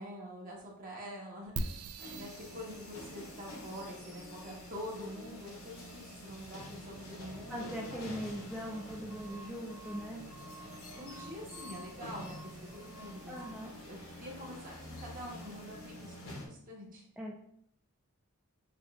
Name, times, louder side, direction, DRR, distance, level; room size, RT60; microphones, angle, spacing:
voice 1, 0.0-1.7 2.1-7.7 10.6-13.4 13.8-17.1, equal, 40° right, -2 dB, 1.1 m, -46 dB
sound 1, 1.6-16.3, right 3 dB, 70° right, 0.3 m, -49 dB
sound 2, 2.0-16.5, left 1 dB, 65° left, 0.9 m, -48 dB
voice 2, 7.5-10.2 13.3-13.7 17.2-17.3, equal, 5° right, -4 dB, 0.4 m, -40 dB
6.8 x 2.4 x 2.4 m, 0.71 s
head